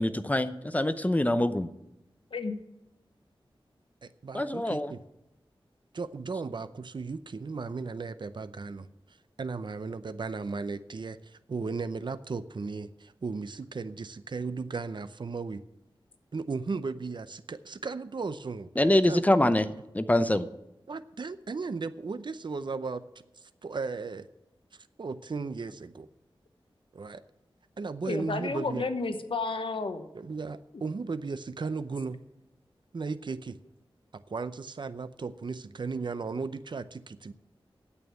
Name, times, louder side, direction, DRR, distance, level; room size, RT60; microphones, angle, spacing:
voice 1, 0.0-1.7 4.3-4.9 18.8-19.7 19.9-20.5, left 1 dB, 15° left, 11 dB, 0.7 m, -24 dB
voice 2, 4.0-5.0 5.9-15.6 16.3-19.2 20.9-23.0 23.4-24.3 25.0-26.1 26.9-27.2 27.8-28.8 30.1-32.2 32.9-33.6 34.1-37.3, right 4 dB, 55° right, 12 dB, 0.6 m, -36 dB
voice 3, 28.0-30.1, left 3 dB, 70° left, 9 dB, 1.0 m, -31 dB
9.6 x 8.5 x 8.9 m, 0.91 s
wide cardioid pair, 90°, 9 cm